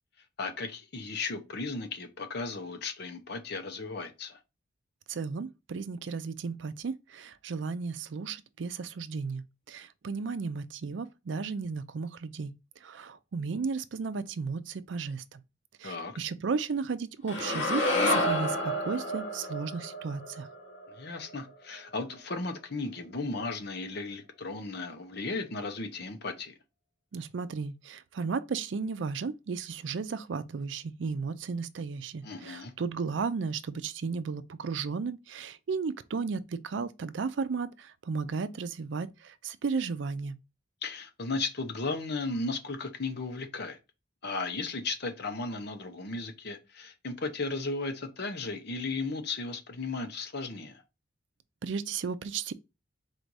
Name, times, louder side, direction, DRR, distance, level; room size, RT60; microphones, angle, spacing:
voice 1, 0.4-4.4 15.8-16.1 20.9-26.5 32.2-32.7 40.8-43.8 44.2-50.8, left 3 dB, 60° left, 0.9 m, -35 dB
voice 2, 5.1-12.5 12.8-15.4 15.8-20.5 27.1-40.4 51.6-52.5, right 5 dB, 70° right, 0.4 m, -34 dB
sound 1, 17.3-21.5, left 1 dB, 75° left, 2.2 m, -30 dB
4.3 x 2.7 x 4.6 m
head